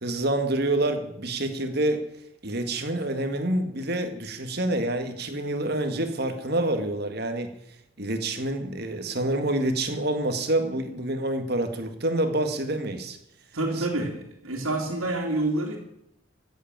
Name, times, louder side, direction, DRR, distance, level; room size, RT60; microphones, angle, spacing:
voice 1, 0.0-2.0 2.4-7.5 8.0-13.2 13.8-13.9, right 1 dB, 50° right, 7 dB, 2.0 m, -27 dB
voice 2, 13.5-15.8, right 2 dB, 90° right, -2 dB, 2.9 m, -28 dB
15.5 x 8.2 x 8.9 m, 0.77 s
head